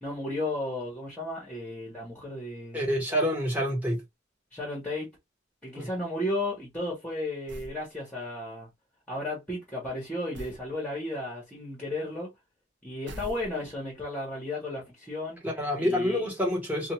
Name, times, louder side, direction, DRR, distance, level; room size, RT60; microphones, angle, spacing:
voice 1, 0.0-2.8 4.5-5.1 5.6-8.7 9.1-12.3 12.8-15.4 15.8-16.2, left 1 dB, 5° left, 1.1 m, -34 dB
voice 2, 2.7-4.0 5.8-5.9 15.4-16.9, equal, 10° right, 1.2 m, -27 dB
sound 1, 7.5-7.8 10.3-10.7 13.1-13.9, equal, 65° right, 0.6 m, -42 dB
2.5 x 2.3 x 2.9 m
head